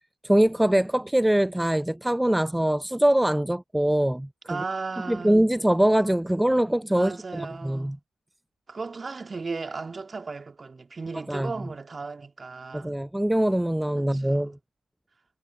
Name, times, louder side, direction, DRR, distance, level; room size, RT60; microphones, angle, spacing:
voice 1, 0.2-4.3 5.1-7.1 7.4-8.0 11.3-11.5 12.7-14.5, right 1 dB, 5° right, 0.5 m, -23 dB
voice 2, 4.5-5.4 7.0-8.0 8.7-13.0 14.0-14.6, right 4 dB, 30° right, 2.8 m, -35 dB
figure-of-eight pair, 45°, 0 cm